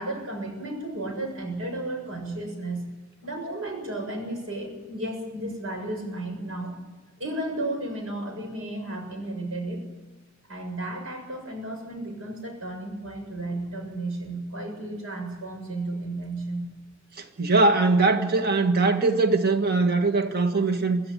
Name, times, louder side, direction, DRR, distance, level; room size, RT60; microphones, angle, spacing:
voice 1, 0.0-2.9 3.2-6.8 7.2-9.9 10.5-16.7, right 1 dB, 90° right, 3 dB, 7.0 m, -33 dB
voice 2, 17.2-21.0, right 3 dB, 50° right, 6 dB, 1.9 m, -21 dB
24.5 x 15.0 x 9.4 m, 1.2 s
head